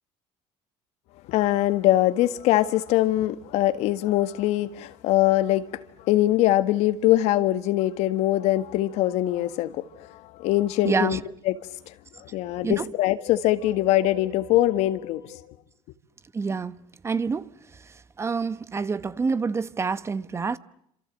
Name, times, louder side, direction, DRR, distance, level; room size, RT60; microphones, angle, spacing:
voice 1, 1.3-5.7 6.0-11.2 11.5-11.6 12.3-15.4, left 15 dB, 75° left, 1.8 m, -22 dB
voice 2, 10.8-11.2 12.6-12.8 16.3-16.8 17.0-17.5 18.2-20.6, right 5 dB, 25° right, 1.0 m, -27 dB
27.5 x 27.0 x 7.7 m
cardioid pair, 115°, 11 cm